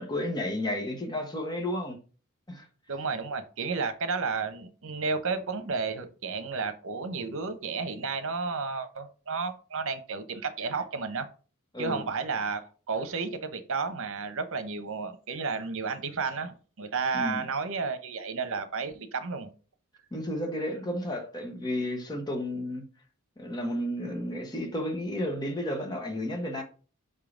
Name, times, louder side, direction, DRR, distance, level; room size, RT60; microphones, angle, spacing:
voice 1, 0.0-2.0 2.5-2.6 11.7-12.1 17.1-17.4 20.1-22.9 23.4-26.6, left 1 dB, 20° left, 1.2 m, -32 dB
voice 2, 2.9-11.3 11.8-19.5, right 4 dB, 65° right, 0.9 m, -32 dB
5.5 x 3.7 x 5.0 m
head